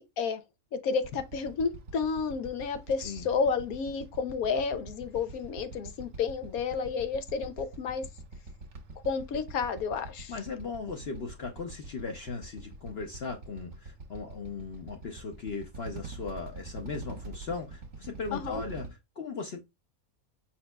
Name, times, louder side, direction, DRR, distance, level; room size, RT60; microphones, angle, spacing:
voice 1, 0.8-8.0 9.0-10.3 18.3-18.6, left 5 dB, 90° left, 1.2 m, -31 dB
Motorcycle / Idling, 1.0-18.9, right 3 dB, 65° right, 1.4 m, -45 dB
voice 2, 10.3-19.6, left 4 dB, 55° left, 0.8 m, -38 dB
5.2 x 4.4 x 2.2 m
omnidirectional pair, 1.5 m